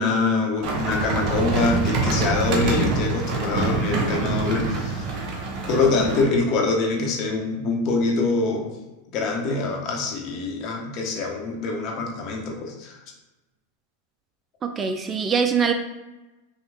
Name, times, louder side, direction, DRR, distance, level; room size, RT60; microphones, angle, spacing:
voice 1, 0.0-5.0 5.7-8.7 9.1-13.0, left 3 dB, 45° left, 1 dB, 1.1 m, -24 dB
sound 1, 0.6-6.2, right 3 dB, 45° right, 1.0 m, -25 dB
voice 2, 14.6-15.7, right 6 dB, 25° right, 6 dB, 0.3 m, -23 dB
5.4 x 2.3 x 3.4 m, 1.1 s
supercardioid pair, 130°, 0 cm